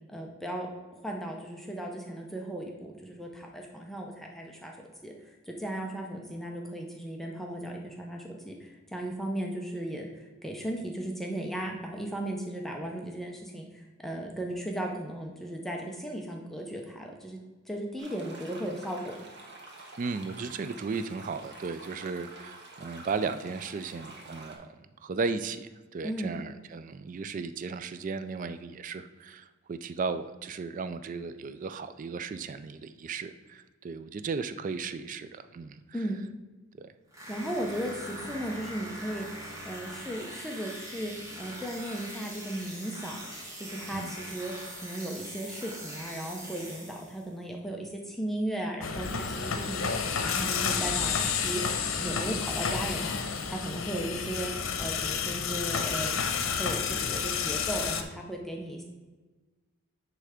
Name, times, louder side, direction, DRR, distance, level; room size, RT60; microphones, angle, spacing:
voice 1, 0.1-0.7 0.9-4.8 5.0-17.4 17.7-19.2 26.0-26.4 35.9-36.2 37.3-41.1 41.4-43.2 43.6-53.2 53.5-54.5 54.8-58.8, right 1 dB, ahead, 0 dB, 0.7 m, -36 dB
sound 1, 18.0-24.5, right 2 dB, 60° right, 1.5 m, -48 dB
voice 2, 20.0-35.8 36.8-36.9 43.9-44.1 52.3-52.4, right 4 dB, 40° right, 12 dB, 0.3 m, -35 dB
sound 2, 37.1-47.3, equal, 15° right, 1.4 m, -42 dB
sound 3, 48.8-58.0, left 6 dB, 85° left, 0.8 m, -30 dB
9.9 x 3.4 x 4.9 m, 1.3 s
head